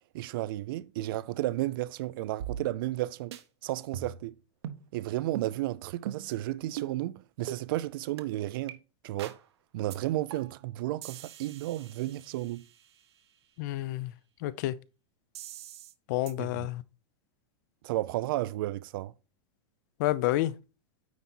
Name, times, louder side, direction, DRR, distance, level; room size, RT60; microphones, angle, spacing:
voice 1, 0.1-3.4 3.6-4.3 4.9-8.8 9.0-9.4 9.7-12.6 16.4-16.7 17.8-19.1, right 16 dB, 55° right, 0.4 m, -33 dB
sound 1, 2.4-3.0 3.3-3.4 3.9-4.3 4.6-4.8 5.4-5.5 6.1-6.4 6.8-6.9 7.5-7.6 8.2-8.3 8.7-8.8 9.2-9.4 9.9-10.0 10.3-10.6 11.0-12.9 15.4-15.9 16.3-16.4, right 10 dB, 70° right, 1.0 m, -41 dB
voice 2, 13.6-14.1 14.4-14.7 16.1-16.8 20.0-20.5, left 15 dB, 45° left, 0.5 m, -29 dB
9.3 x 4.1 x 4.3 m
supercardioid pair, 165°, 14 cm